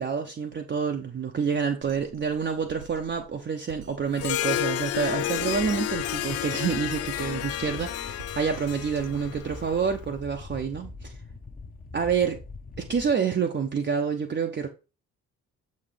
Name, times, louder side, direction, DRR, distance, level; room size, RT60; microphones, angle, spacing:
voice 1, 0.0-11.1 11.9-12.4 12.8-14.7, right 6 dB, 25° right, 0.7 m, -28 dB
Drum kit, 1.8-9.8, right 8 dB, 75° right, 0.7 m, -49 dB
Harp, 4.1-9.9, left 13 dB, 40° left, 0.4 m, -31 dB
sound 1, 5.3-13.1, left 3 dB, 20° left, 0.8 m, -43 dB
7.0 x 4.1 x 3.4 m
figure-of-eight pair, 40°, 41 cm